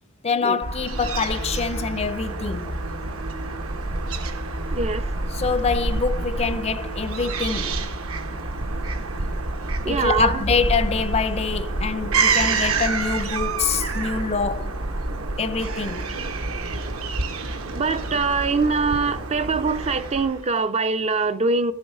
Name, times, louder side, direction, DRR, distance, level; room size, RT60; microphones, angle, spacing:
voice 1, 0.2-2.8 5.3-7.9 9.9-14.8 15.4-16.2, left 5 dB, 30° left, 0.5 m, -25 dB
Fowl / Gull seagull, 0.6-20.5, right 3 dB, 70° right, 1.2 m, -28 dB
voice 2, 4.7-5.1 9.8-10.4 17.7-21.7, right 4 dB, 30° right, 0.5 m, -23 dB
13.5 x 7.8 x 5.4 m
head